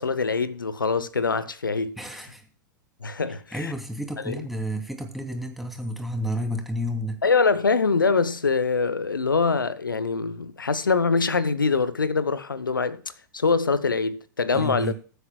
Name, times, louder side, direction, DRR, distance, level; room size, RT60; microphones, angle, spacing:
voice 1, 0.0-2.0 3.0-3.7 4.2-4.5 7.2-13.0 13.3-14.9, left 4 dB, 90° left, 0.8 m, -24 dB
voice 2, 2.0-2.5 3.5-7.2 14.5-14.9, equal, ahead, 2.8 m, -31 dB
21.0 x 8.2 x 2.3 m
hypercardioid pair, 95°, 11 cm